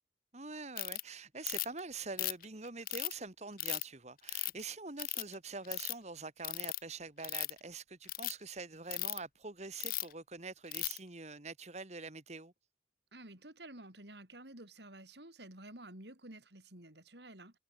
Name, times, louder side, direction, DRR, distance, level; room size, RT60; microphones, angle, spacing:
voice 1, 0.3-12.5, right 3 dB, 40° right, 1.9 m, -45 dB
Ratchet pawl, 0.8-1.0 1.5-1.8 2.2-3.1 3.6-3.8 4.3-4.6 5.0-5.3 5.6-5.9 6.4-6.8 7.2-7.6 8.0-8.3 8.9-9.2 9.8-10.1 10.7-11.0, left 18 dB, 50° left, 0.5 m, -36 dB
voice 2, 13.1-17.6, right 1 dB, 70° right, 6.3 m, -51 dB
head